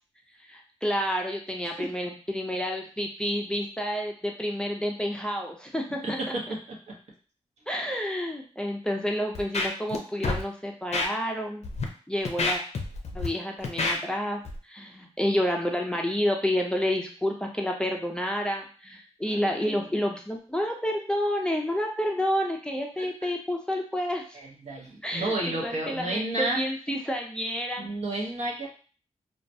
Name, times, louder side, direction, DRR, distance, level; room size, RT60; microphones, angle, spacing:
voice 1, 0.5-6.0 7.7-11.7 12.1-12.6 13.1-24.2 25.0-27.9, equal, 5° left, 1 dB, 0.5 m, -29 dB
Scratching (performance technique), 9.3-10.0 10.2-10.4 10.9-11.1 11.6-11.8 12.2-13.3 13.6-13.9 14.4-14.6, left 3 dB, 60° left, 0.5 m, -27 dB
voice 2, 19.3-19.7 24.3-26.6 27.8-28.7, right 2 dB, 65° right, -2 dB, 0.8 m, -31 dB
2.3 x 2.0 x 2.6 m, 0.39 s
cardioid pair, 60°, 13 cm